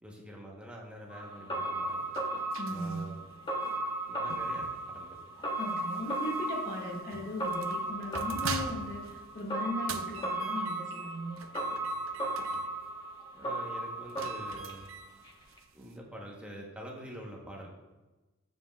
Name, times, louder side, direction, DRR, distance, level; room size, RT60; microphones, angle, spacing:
voice 1, 0.0-2.1 2.7-3.2 4.1-5.2 13.3-14.9 15.7-17.7, right 1 dB, 5° right, -2 dB, 0.9 m, -46 dB
sound 1, 1.1-15.3 15.6-15.7, right 1 dB, 20° left, 1.0 m, -36 dB
sound 2, 1.4-16.0, right 5 dB, 70° right, 0.5 m, -45 dB
voice 2, 2.6-3.0 5.6-11.4, left 1 dB, 45° left, -3 dB, 1.6 m, -38 dB
9.1 x 7.5 x 2.3 m, 1.1 s
head